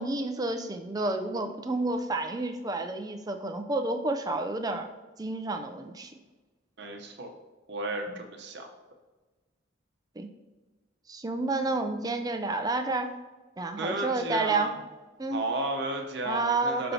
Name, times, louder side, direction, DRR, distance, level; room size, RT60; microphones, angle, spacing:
voice 1, 0.0-4.9 5.2-6.1 10.2-10.3 11.1-13.1 13.6-14.7 15.2-15.4 16.3-16.9, right 2 dB, 20° right, 6 dB, 0.4 m, -30 dB
voice 2, 6.8-7.3 7.7-8.7 13.8-14.7 15.3-16.9, right 2 dB, 55° right, 3 dB, 0.9 m, -33 dB
11.0 x 4.3 x 2.8 m, 1.2 s
head